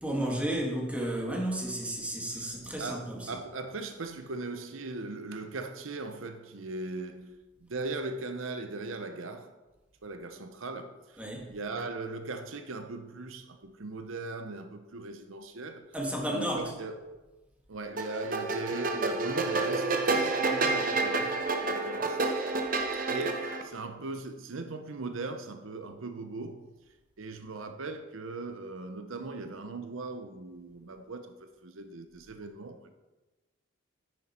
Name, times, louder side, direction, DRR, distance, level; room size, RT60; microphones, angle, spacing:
voice 1, 0.0-3.3 11.2-11.5 15.9-16.6, right 1 dB, 5° right, 1.8 m, -32 dB
voice 2, 2.3-9.5 10.0-15.9 16.3-17.1 17.7-22.2 23.1-26.7 27.2-31.3 31.6-32.9, right 3 dB, 80° right, 0.8 m, -39 dB
sound 1, 18.0-23.6, right 3 dB, 40° right, 1.1 m, -29 dB
10.0 x 9.6 x 4.4 m
head